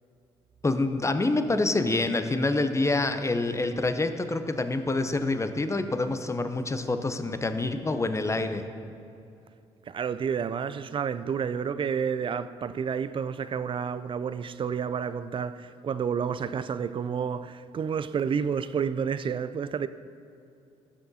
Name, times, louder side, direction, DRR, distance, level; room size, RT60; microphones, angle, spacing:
voice 1, 0.6-8.7, left 2 dB, 20° left, 0.6 m, -27 dB
voice 2, 9.9-19.9, right 7 dB, 30° right, 0.4 m, -30 dB
14.0 x 6.6 x 2.7 m
hypercardioid pair, 50°, 16 cm